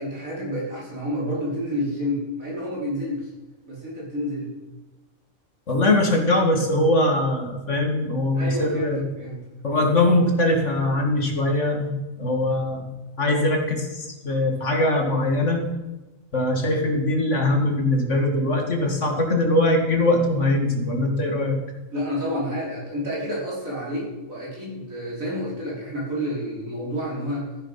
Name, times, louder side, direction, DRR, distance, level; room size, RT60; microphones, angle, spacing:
voice 1, 0.0-3.3 3.7-4.5 8.4-9.4 9.7-9.9 21.9-27.5, equal, 85° right, -5 dB, 5.6 m, -29 dB
voice 2, 5.7-9.0 9.6-12.9 13.2-15.7 16.3-21.6, left 1 dB, 60° left, 2 dB, 2.6 m, -22 dB
14.5 x 10.0 x 5.8 m, 1.1 s
omnidirectional pair, 1.4 m